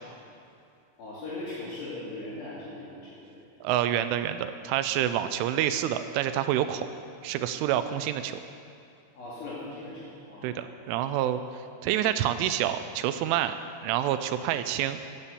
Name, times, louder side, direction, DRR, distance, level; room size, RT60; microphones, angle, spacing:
voice 1, 1.0-3.5 9.1-10.7, left 2 dB, 60° left, -7 dB, 4.2 m, -39 dB
voice 2, 3.6-6.9 7.2-8.4 10.4-11.4 11.8-13.5 13.8-15.0, right 11 dB, 85° right, 10 dB, 2.9 m, -27 dB
16.0 x 12.0 x 6.9 m, 2.5 s
omnidirectional pair, 5.9 m